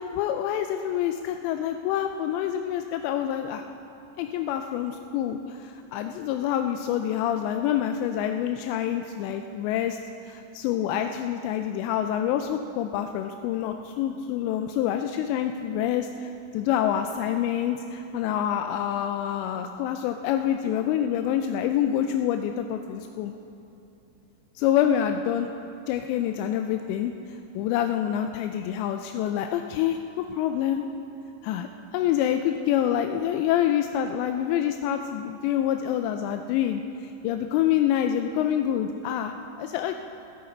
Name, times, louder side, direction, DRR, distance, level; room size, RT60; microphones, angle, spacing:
voice 1, 0.0-3.6 4.2-10.0 10.3-23.3 24.6-25.5 25.9-30.9 31.4-39.9, left 10 dB, 85° left, 6 dB, 2.7 m, -27 dB
19.0 x 10.5 x 4.4 m, 2.9 s
omnidirectional pair, 5.1 m